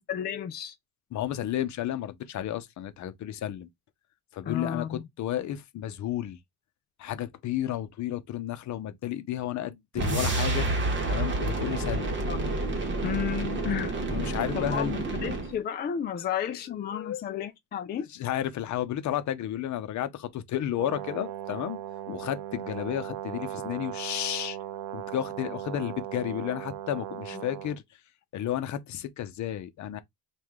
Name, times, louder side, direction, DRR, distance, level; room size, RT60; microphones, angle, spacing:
voice 1, 0.1-0.7 4.4-5.1 12.3-12.4 13.0-13.9 14.5-18.1, left 8 dB, 30° left, 0.4 m, -32 dB
voice 2, 1.1-3.7 4.3-6.4 7.0-10.7 11.1-12.1 14.1-14.9 16.8-17.2 18.2-21.8 22.1-24.6 24.9-27.8 28.3-30.0, left 11 dB, 50° left, 0.7 m, -32 dB
sound 1, 9.9-15.6, right 2 dB, 30° right, 1.3 m, -29 dB
Brass instrument, 20.8-27.8, right 12 dB, 65° right, 0.5 m, -38 dB
4.7 x 2.5 x 3.6 m
cardioid pair, 140°, 36 cm